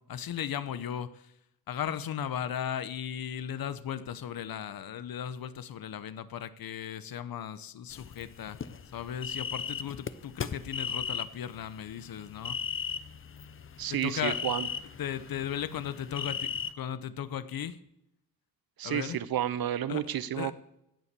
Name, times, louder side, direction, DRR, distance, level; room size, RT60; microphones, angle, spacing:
voice 1, 0.0-1.3 1.7-8.6 8.9-12.6 14.0-14.4 15.0-17.8 18.8-19.2 19.9-20.0 20.3-20.5, left 9 dB, 75° left, 14 dB, 0.9 m, -36 dB
sound 1, 7.9-16.7, left 7 dB, 35° left, 0.6 m, -37 dB
voice 2, 13.8-14.7 18.8-20.5, right 11 dB, 80° right, 16 dB, 0.8 m, -31 dB
17.0 x 7.3 x 6.8 m, 0.81 s
wide cardioid pair, 155°, 36 cm